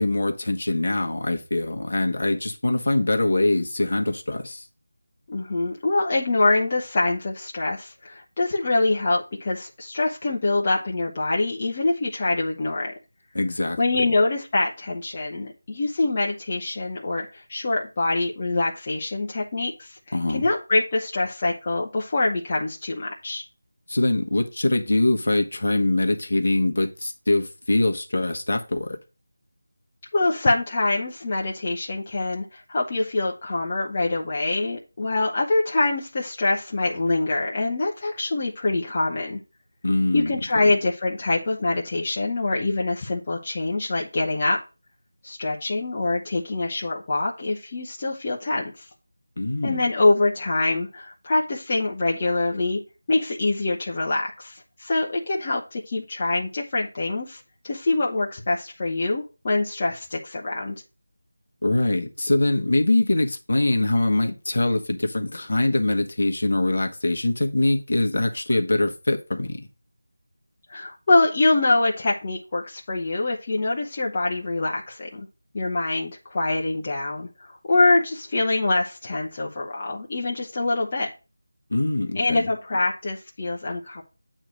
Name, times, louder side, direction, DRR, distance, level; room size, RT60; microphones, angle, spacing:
voice 1, 0.0-4.6 13.3-13.8 20.1-20.5 23.9-29.0 39.8-40.6 49.4-49.9 61.6-69.7 81.7-82.5, left 2 dB, 55° left, 1.2 m, -23 dB
voice 2, 5.3-12.9 13.8-20.0 20.3-23.4 30.1-39.4 40.1-44.6 45.2-48.8 49.6-52.8 53.1-60.8 70.7-75.3 75.5-81.1 82.1-84.0, left 2 dB, 25° left, 0.9 m, -24 dB
8.8 x 3.2 x 5.2 m
figure-of-eight pair, 175°, 0 cm